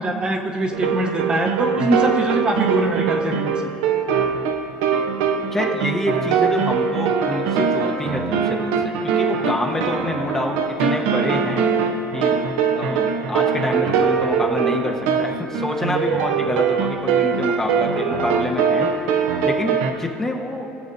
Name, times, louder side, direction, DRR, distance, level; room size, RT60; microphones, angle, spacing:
voice 1, 0.0-3.5, right 2 dB, 25° right, 2 dB, 0.9 m, -23 dB
sound 1, 0.7-19.9, right 6 dB, 85° right, 0.8 m, -22 dB
voice 2, 5.5-11.6 12.1-12.4 12.7-19.1 19.4-20.7, left 1 dB, 15° left, 1 dB, 0.9 m, -27 dB
19.0 x 7.0 x 2.7 m, 2.7 s
cardioid pair, 125°, 4 cm